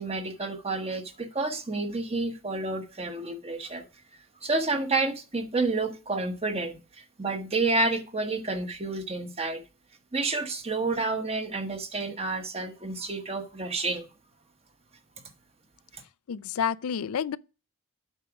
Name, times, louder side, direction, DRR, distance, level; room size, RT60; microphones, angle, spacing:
voice 1, 0.0-3.8 4.4-9.6 10.1-14.1, right 3 dB, 30° right, 1.0 m, -30 dB
voice 2, 16.3-17.4, left 8 dB, 85° left, 0.4 m, -29 dB
8.2 x 4.9 x 5.0 m
head